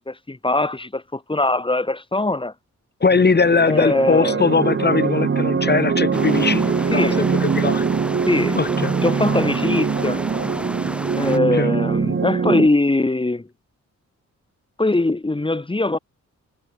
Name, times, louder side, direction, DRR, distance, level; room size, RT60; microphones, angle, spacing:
voice 1, 0.1-2.5 3.7-4.4 6.9-7.3 8.3-8.6 9.0-10.2 11.2-13.5 14.8-16.0, left 2 dB, 15° left, 2.9 m, -21 dB
voice 2, 3.0-7.1 7.4-7.8 8.5-8.9 11.5-11.8, left 4 dB, 35° left, 4.6 m, -20 dB
sound 1, 3.1-12.7, right 6 dB, 40° right, 2.1 m, -22 dB
sound 2, 6.1-11.4, equal, 5° right, 4.0 m, -31 dB
wide cardioid pair, 125°, 30 cm